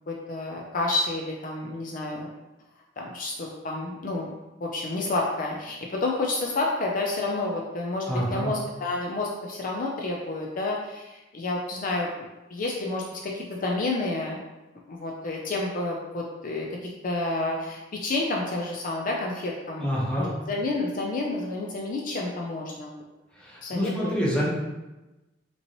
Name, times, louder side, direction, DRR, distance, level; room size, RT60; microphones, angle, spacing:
voice 1, 0.1-2.3 3.0-4.3 4.6-12.1 12.5-14.4 14.9-19.9 20.2-22.9 23.6-24.1, left 2 dB, 50° left, -1 dB, 0.5 m, -30 dB
voice 2, 8.1-8.5 19.8-20.3 23.3-24.5, equal, 5° left, -6 dB, 1.1 m, -27 dB
5.3 x 3.1 x 3.0 m, 1.1 s
head